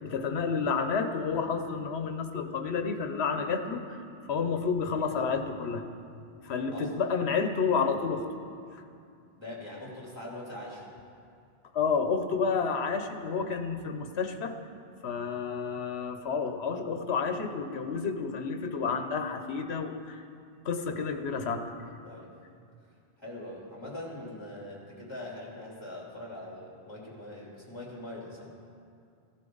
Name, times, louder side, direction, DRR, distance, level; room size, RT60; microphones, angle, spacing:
voice 1, 0.0-4.0 4.3-5.8 6.4-8.3 11.7-14.5 15.0-20.2 20.6-21.6, left 5 dB, 80° left, 7 dB, 1.1 m, -30 dB
voice 2, 4.9-5.2 6.7-6.9 9.4-10.9 22.0-22.3 23.2-28.5, left 1 dB, 25° left, -4 dB, 2.8 m, -42 dB
16.0 x 11.5 x 3.9 m, 2.4 s
omnidirectional pair, 1.1 m